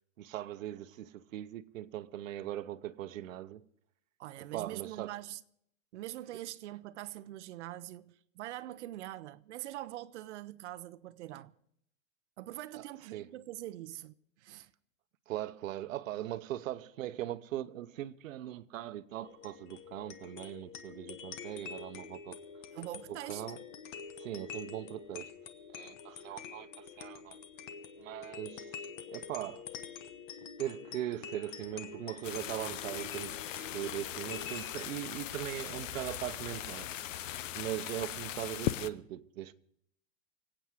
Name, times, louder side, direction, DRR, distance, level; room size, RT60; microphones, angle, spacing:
voice 1, 0.2-3.6 4.4-5.1 12.7-12.8 13.1-13.3 15.3-22.4 23.1-23.6 24.2-25.3 25.7-27.4 28.0-28.8 29.1-29.7 30.6-39.5, right 13 dB, 90° right, 0.9 m, -40 dB
voice 2, 4.2-5.4 5.9-11.5 12.4-14.7 22.7-23.4, right 15 dB, 60° right, 0.8 m, -43 dB
sound 1, 19.2-35.0, left 6 dB, 40° left, 1.0 m, -47 dB
sound 2, 32.2-38.9, left 12 dB, 75° left, 0.8 m, -39 dB
25.5 x 8.8 x 4.8 m
supercardioid pair, 165°, 39 cm